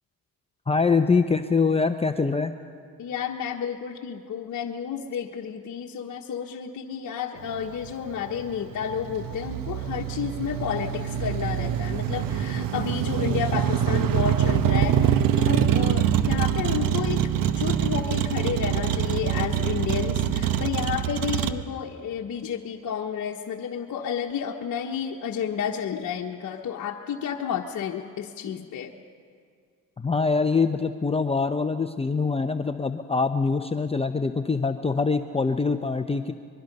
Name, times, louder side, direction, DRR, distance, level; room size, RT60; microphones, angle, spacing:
voice 1, 0.7-2.5 30.0-36.3, left 4 dB, 15° left, 7 dB, 0.8 m, -24 dB
voice 2, 3.0-28.9, left 8 dB, 55° left, 0 dB, 1.3 m, -31 dB
Motor vehicle (road), 7.4-21.5, right 9 dB, 70° right, 1.1 m, -25 dB
24.0 x 23.0 x 5.5 m, 2.2 s
supercardioid pair, 75°, 35 cm